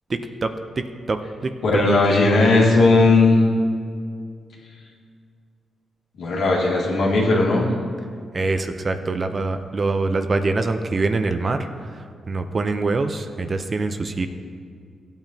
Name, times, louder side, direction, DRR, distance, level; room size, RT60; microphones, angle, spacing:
voice 1, 0.1-1.5 8.3-11.7 12.3-14.3, right 3 dB, 35° right, 7 dB, 0.6 m, -24 dB
voice 2, 1.6-3.5 6.2-7.7, left 2 dB, 80° left, -4 dB, 2.3 m, -17 dB
16.0 x 8.9 x 2.8 m, 2.2 s
cardioid pair, 100°, 0 cm